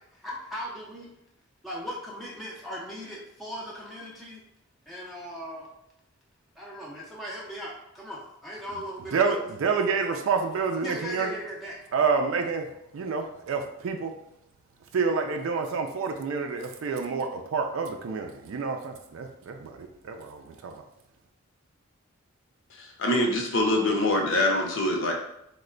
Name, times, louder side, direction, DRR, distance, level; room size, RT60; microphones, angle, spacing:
voice 1, 0.1-1.1 1.6-4.4 4.9-5.7 6.6-9.4 10.8-11.8, equal, ahead, -5 dB, 0.4 m, -38 dB
voice 2, 9.1-11.3 11.9-14.1 14.9-20.8, right 5 dB, 70° right, 4 dB, 0.4 m, -28 dB
voice 3, 22.7-25.1, left 1 dB, 65° left, 1 dB, 0.7 m, -24 dB
3.1 x 2.1 x 3.7 m, 0.82 s
head